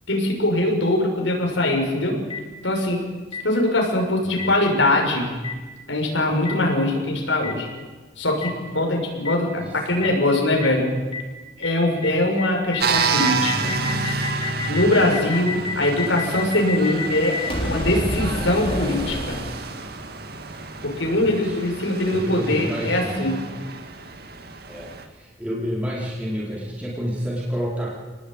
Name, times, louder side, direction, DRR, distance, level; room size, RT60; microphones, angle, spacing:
voice 1, 0.1-2.2 2.6-3.0 3.4-5.3 5.9-7.7 8.2-11.0 11.6-13.7 14.7-19.4 20.8-23.4, left 1 dB, 80° left, 1 dB, 6.6 m, -22 dB
Boom, 2.3-2.4 3.3-3.4 4.4-4.5 5.4-5.5 6.4-6.5 7.4-7.5 8.4-8.5 9.2-9.3 10.0-10.1 10.6-10.7 11.1-11.2 11.6-11.7 12.0-12.1 12.4-19.9, left 3 dB, 25° left, 3.8 m, -29 dB
voice 2, 9.6-10.1 16.3-16.4 21.2-23.3 24.7-27.9, equal, 5° right, -5 dB, 4.8 m, -30 dB
sound 1, 12.8-25.0, right 4 dB, 55° right, 2.2 m, -29 dB
28.5 x 20.0 x 9.1 m, 1.3 s
head